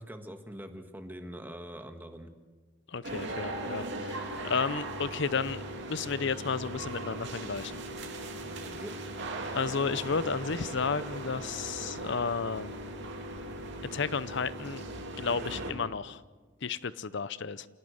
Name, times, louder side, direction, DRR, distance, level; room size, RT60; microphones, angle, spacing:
voice 1, 0.0-2.3 8.4-8.9, equal, 10° right, 6 dB, 1.6 m, -44 dB
voice 2, 2.9-7.8 9.5-12.7 13.9-14.8 15.2-16.2 16.6-17.7, left 5 dB, 60° left, 16 dB, 0.7 m, -32 dB
sound 1, 3.0-15.7, right 1 dB, 60° right, 3.1 m, -39 dB
27.0 x 18.5 x 6.5 m, 1.3 s
head